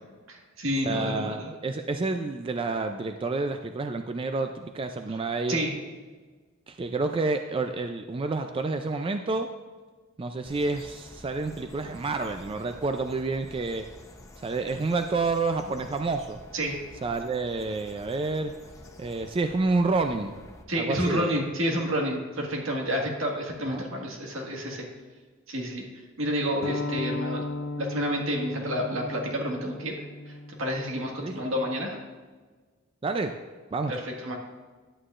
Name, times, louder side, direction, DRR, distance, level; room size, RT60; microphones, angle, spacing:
voice 1, 0.3-1.5 5.5-5.7 16.5-16.8 20.7-24.8 25.5-25.8 26.2-27.4 27.8-29.9 30.3-32.0 33.9-34.4, equal, 80° right, 0 dB, 1.7 m, -29 dB
voice 2, 0.9-5.6 6.7-9.5 10.2-13.8 14.4-16.4 17.0-18.5 19.0-20.3 20.8-21.4 23.7-23.8 31.2-31.3 33.0-33.3 33.7-33.9, right 3 dB, 25° right, 7 dB, 0.3 m, -29 dB
sound 1, 10.4-20.6, left 1 dB, 15° left, 0.7 m, -49 dB
sound 2, 26.6-31.8, left 2 dB, 90° left, 0.5 m, -36 dB
11.0 x 8.7 x 2.5 m, 1.4 s
head